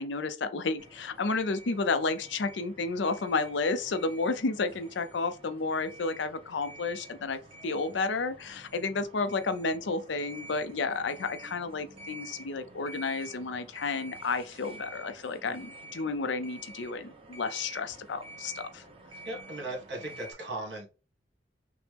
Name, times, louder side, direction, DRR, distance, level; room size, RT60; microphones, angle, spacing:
voice 1, 0.0-18.8, left 3 dB, 90° left, 0.5 m, -31 dB
sound 1, 0.8-20.3, right 1 dB, 30° right, 1.0 m, -49 dB
voice 2, 19.2-20.9, right 2 dB, 70° right, 1.8 m, -37 dB
5.9 x 2.1 x 3.4 m
head